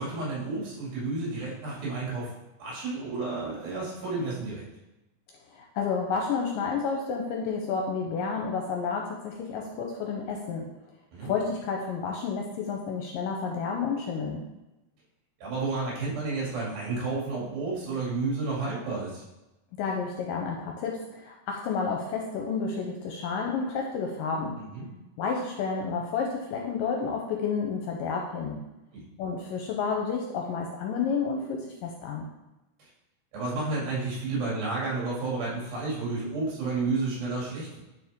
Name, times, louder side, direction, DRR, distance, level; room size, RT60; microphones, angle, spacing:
voice 1, 0.0-2.3 2.6-4.6 11.1-11.3 15.4-19.2 24.6-24.9 28.9-29.0 32.8-32.9 33.3-37.8, right 3 dB, 65° right, -5 dB, 4.2 m, -31 dB
voice 2, 5.5-10.7 11.2-14.4 19.7-24.6 25.2-28.6 29.2-32.3, left 5 dB, 75° left, 1 dB, 2.1 m, -30 dB
10.5 x 4.4 x 3.6 m, 0.98 s
omnidirectional pair, 4.5 m